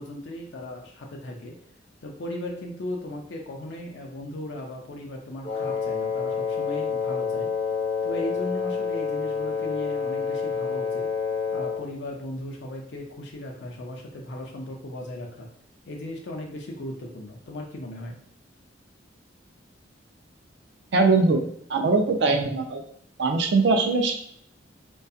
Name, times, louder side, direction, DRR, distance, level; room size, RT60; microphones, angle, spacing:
voice 1, 0.0-1.6 2.0-7.5 8.0-11.1 11.5-15.5 15.9-18.2, left 1 dB, 65° left, 0 dB, 0.5 m, -37 dB
Wind instrument woodwind instrument, 5.4-11.9, left 5 dB, 30° left, 0.8 m, -28 dB
voice 2, 20.9-21.4 21.7-22.8 23.2-24.2, right 3 dB, 60° right, 4 dB, 0.4 m, -21 dB
2.7 x 2.2 x 2.3 m, 0.68 s
head